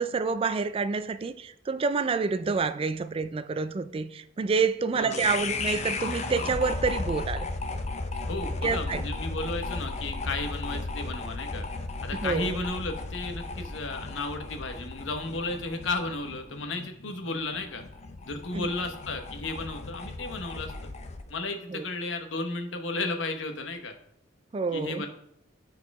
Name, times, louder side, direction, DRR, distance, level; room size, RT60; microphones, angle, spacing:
voice 1, 0.0-7.5 8.6-9.0 12.1-12.6 18.5-18.7 21.7-21.9 24.5-25.1, right 4 dB, 30° right, 0.3 m, -28 dB
voice 2, 5.0-5.3 8.3-11.7 12.0-17.8 18.2-20.7 21.3-23.9 24.7-25.1, left 2 dB, 85° left, 1.1 m, -33 dB
sound 1, 5.1-21.3, left 3 dB, 35° left, 0.6 m, -35 dB
9.3 x 4.8 x 4.7 m
head